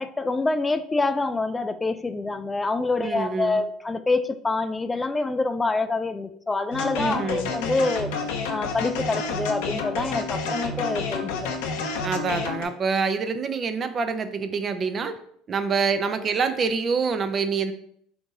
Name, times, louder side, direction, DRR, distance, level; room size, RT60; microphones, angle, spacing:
voice 1, 0.0-8.1 8.5-11.5, left 3 dB, 20° left, 10 dB, 0.3 m, -26 dB
voice 2, 3.0-3.6 7.0-7.5 12.0-15.1 15.5-17.7, right 5 dB, 40° right, 9 dB, 0.5 m, -26 dB
sound 1, 6.7-12.7, left 4 dB, 75° left, 0.6 m, -30 dB
4.5 x 2.6 x 3.8 m, 0.65 s
hypercardioid pair, 75°, 0 cm